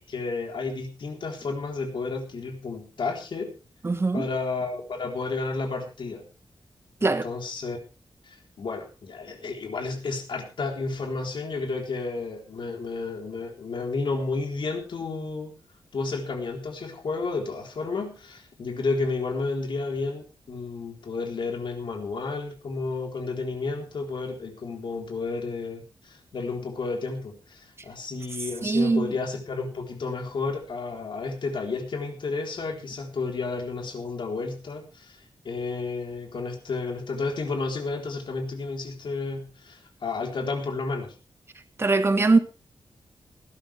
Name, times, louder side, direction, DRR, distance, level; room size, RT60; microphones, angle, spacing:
voice 1, 0.1-3.5 4.1-6.3 7.0-7.8 8.2-15.6 15.9-35.2 35.4-41.1, left 3 dB, 60° left, 4.0 m, -31 dB
voice 2, 3.8-4.3 7.0-7.2 28.6-29.1 41.8-42.4, right 3 dB, 25° right, 1.4 m, -21 dB
19.0 x 12.5 x 3.5 m
wide cardioid pair, 160°, 9 cm